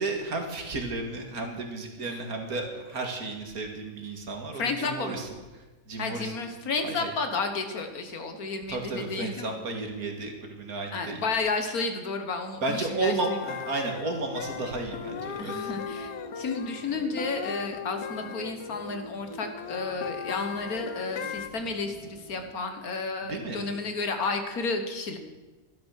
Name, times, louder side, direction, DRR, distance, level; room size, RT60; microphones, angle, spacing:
voice 1, 0.0-5.3 5.5-6.3 6.8-7.1 8.7-11.2 12.6-15.7 23.3-23.6, right 3 dB, 90° right, 3 dB, 2.5 m, -33 dB
voice 2, 4.6-5.2 6.0-9.6 10.9-13.4 15.4-25.2, left 3 dB, 80° left, 6 dB, 1.9 m, -32 dB
sound 1, 13.2-21.5, left 9 dB, 60° left, 0.9 m, -38 dB
sound 2, 14.4-22.5, right 3 dB, 25° right, 0.8 m, -45 dB
12.5 x 12.0 x 6.5 m, 1.2 s
omnidirectional pair, 1.5 m